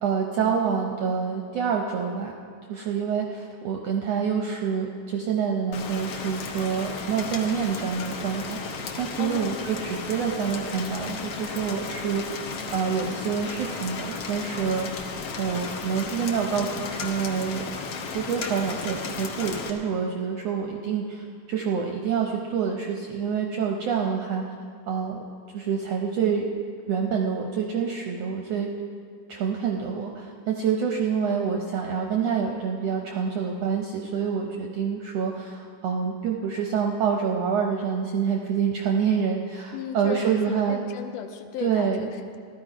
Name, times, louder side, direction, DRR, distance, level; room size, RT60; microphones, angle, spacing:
voice 1, 0.0-2.3 2.7-12.4 12.7-14.9 15.4-17.7 18.1-24.4 24.9-25.2 25.5-26.5 26.9-28.7 29.3-40.8 41.6-42.1, right 6 dB, 75° right, 1 dB, 1.5 m, -27 dB
Rain, 5.7-19.7, left 5 dB, 65° left, 1.7 m, -34 dB
voice 2, 9.2-9.8 39.7-42.4, left 8 dB, 80° left, 6 dB, 2.2 m, -36 dB
15.5 x 12.5 x 4.9 m, 2.2 s
omnidirectional pair, 3.8 m